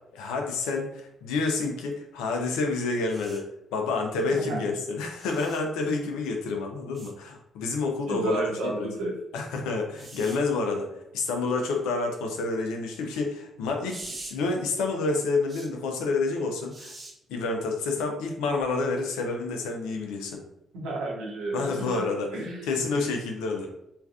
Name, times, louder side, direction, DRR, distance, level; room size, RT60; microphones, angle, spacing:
voice 1, 0.1-3.5 3.7-8.9 9.3-16.9 17.3-20.4 21.5-22.3 22.7-23.7, left 3 dB, 80° left, 3 dB, 0.5 m, -29 dB
sound 1, 3.1-3.4 5.2-5.6 6.9-7.1 9.9-10.4 13.9-14.3 15.5-15.7 16.7-17.1 18.6-18.8, right 2 dB, 35° right, 1.0 m, -43 dB
voice 2, 8.1-9.1 20.7-22.0 22.3-22.8, right 2 dB, 80° right, -3 dB, 0.9 m, -32 dB
3.2 x 2.5 x 2.3 m, 0.80 s
hypercardioid pair, 45°, 0 cm